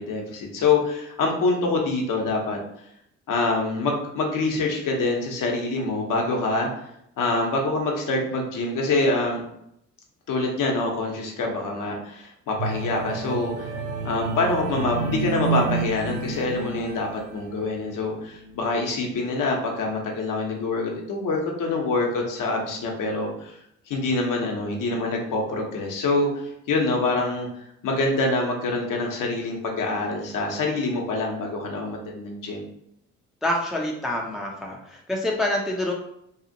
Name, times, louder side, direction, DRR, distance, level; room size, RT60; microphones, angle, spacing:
voice 1, 0.0-2.6 3.3-6.7 7.2-9.4 10.3-13.7 14.0-17.1 17.3-23.3 23.9-27.5 27.8-32.7, left 3 dB, 55° left, 0 dB, 0.8 m, -25 dB
sound 1, 12.6-17.8 18.3-18.5, right 4 dB, 80° right, 0.5 m, -30 dB
voice 2, 33.4-35.9, left 1 dB, ahead, -1 dB, 0.5 m, -26 dB
2.8 x 2.4 x 2.6 m, 0.75 s
hypercardioid pair, 45°, 39 cm